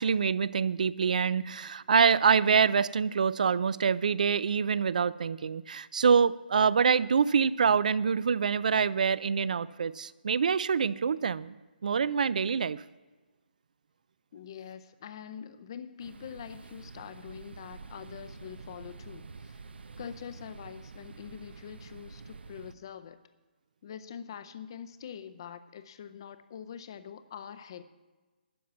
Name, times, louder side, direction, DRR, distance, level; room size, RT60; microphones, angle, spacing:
voice 1, 0.0-11.6 11.8-12.8, right 6 dB, 50° right, 20 dB, 0.4 m, -25 dB
voice 2, 14.3-19.7 20.0-23.2 23.8-27.8, left 8 dB, 25° left, 12 dB, 0.5 m, -44 dB
sound 1, 16.0-22.7, right 4 dB, 85° right, 0.7 m, -48 dB
12.5 x 5.8 x 9.3 m, 1.3 s
hypercardioid pair, 175°, 6 cm